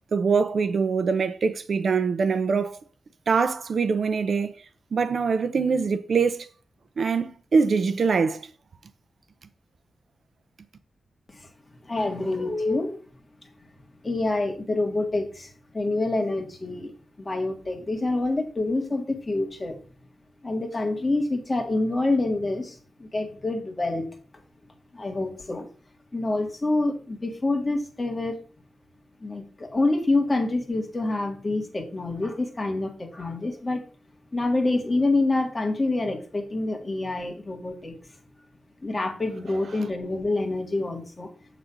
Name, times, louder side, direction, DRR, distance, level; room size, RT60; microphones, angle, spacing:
voice 1, 0.1-2.8 3.3-4.5 4.9-6.5 7.0-8.5 39.7-39.9, right 5 dB, 60° right, 0.6 m, -23 dB
voice 2, 11.8-13.0 14.0-16.9 17.2-19.7 20.4-24.1 24.9-25.7 26.1-28.4 29.2-33.8 34.3-38.0 38.8-41.3, left 2 dB, 25° left, 1.8 m, -27 dB
8.4 x 4.0 x 6.0 m
wide cardioid pair, 95°, 0 cm